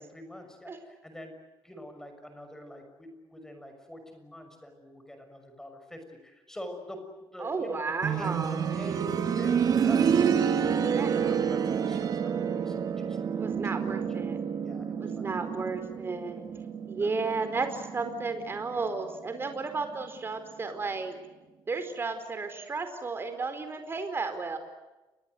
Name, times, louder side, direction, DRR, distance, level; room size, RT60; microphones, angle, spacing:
voice 1, 0.0-1.4 1.6-13.2 13.7-14.0 14.6-15.5 17.0-17.6, equal, 5° left, 6 dB, 6.3 m, -46 dB
voice 2, 7.4-8.7 10.9-11.1 13.4-14.4 15.0-16.4 16.9-21.2 21.7-24.6, right 4 dB, 25° right, 8 dB, 4.6 m, -33 dB
sound 1, 8.0-18.8 20.2-20.3, right 7 dB, 45° right, 2.7 m, -29 dB
30.0 x 23.5 x 8.0 m, 1.1 s
cardioid pair, 145°, 9 cm